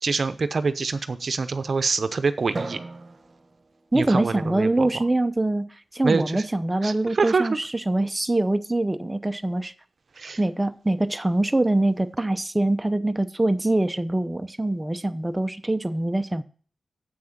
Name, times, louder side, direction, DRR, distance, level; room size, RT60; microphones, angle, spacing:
voice 1, 0.0-2.8 3.9-4.9 6.0-6.4 6.8-7.6 10.2-10.4, right 4 dB, 60° right, 0.7 m, -25 dB
Drum, 2.5-4.8, right 3 dB, 45° right, 1.4 m, -38 dB
voice 2, 3.9-9.7 10.4-16.4, right 2 dB, 20° right, 0.7 m, -24 dB
7.9 x 6.1 x 7.3 m
cardioid pair, 50°, 0 cm